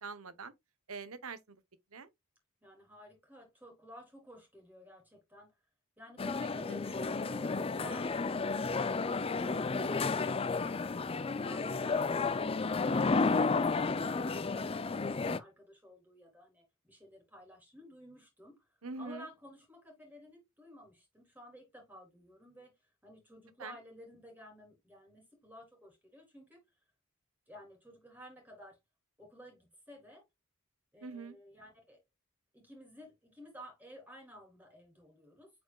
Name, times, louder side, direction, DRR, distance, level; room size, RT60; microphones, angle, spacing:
voice 1, 0.0-0.5 0.9-1.6 1.9-2.1 6.4-6.8 18.8-19.3 23.6-23.8 31.0-31.4, right 4 dB, 80° right, 1.0 m, -44 dB
voice 2, 2.6-5.5 6.0-10.7 11.4-13.2 13.5-18.7 19.0-22.7 23.0-26.6 27.5-28.8 29.2-30.2 30.9-32.0 32.5-35.5, left 1 dB, 10° right, 3.8 m, -54 dB
sound 1, 6.2-15.4, left 4 dB, 25° left, 0.4 m, -32 dB
7.9 x 5.1 x 2.3 m
head